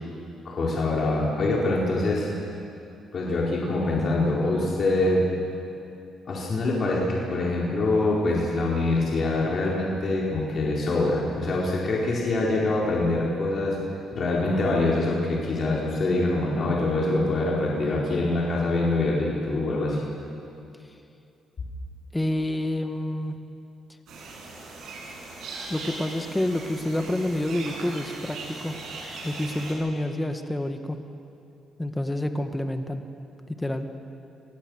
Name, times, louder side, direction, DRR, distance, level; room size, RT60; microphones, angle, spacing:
voice 1, 0.4-2.3 3.1-5.2 6.3-13.8 14.1-20.0, left 2 dB, 50° left, -4 dB, 4.4 m, -24 dB
voice 2, 22.1-23.3 25.7-28.7 29.2-31.0 31.8-33.1 33.5-33.9, left 1 dB, 10° left, 7 dB, 1.7 m, -28 dB
sound 1, 24.1-29.7, right 3 dB, 75° right, 6.6 m, -39 dB
29.5 x 19.0 x 6.5 m, 2.6 s
cardioid pair, 90°, 0 cm